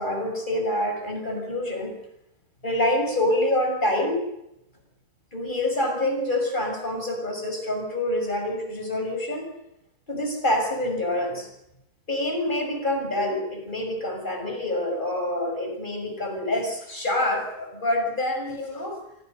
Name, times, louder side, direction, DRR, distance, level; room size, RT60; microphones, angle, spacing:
voice 1, 0.0-2.0 2.6-4.2 5.3-9.5 10.1-11.5 12.1-19.0, left 1 dB, 30° left, 4 dB, 6.4 m, -26 dB
28.0 x 23.0 x 6.6 m, 0.85 s
omnidirectional pair, 1.8 m